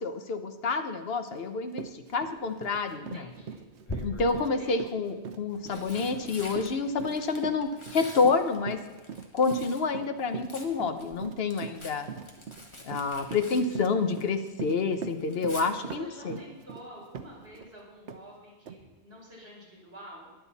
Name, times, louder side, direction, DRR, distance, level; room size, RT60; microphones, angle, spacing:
voice 1, 0.0-3.3 4.0-8.8 9.3-12.1 12.8-16.4, left 4 dB, 60° left, 8 dB, 1.2 m, -28 dB
Run, 1.3-1.4 1.7-17.7 18.1-18.2 18.7-18.8, right 6 dB, 90° right, 1.1 m, -41 dB
Tearing, 2.4-2.8 3.9-4.6 5.4-9.9 10.2-14.5 14.8-15.7 17.5-17.8 18.1-18.2, left 1 dB, 25° left, 1.5 m, -45 dB
voice 2, 2.9-3.7 4.4-5.0 13.3-13.8 15.6-20.3, equal, 60° right, -6 dB, 5.1 m, -49 dB
21.5 x 7.9 x 4.1 m, 1.3 s
omnidirectional pair, 1.1 m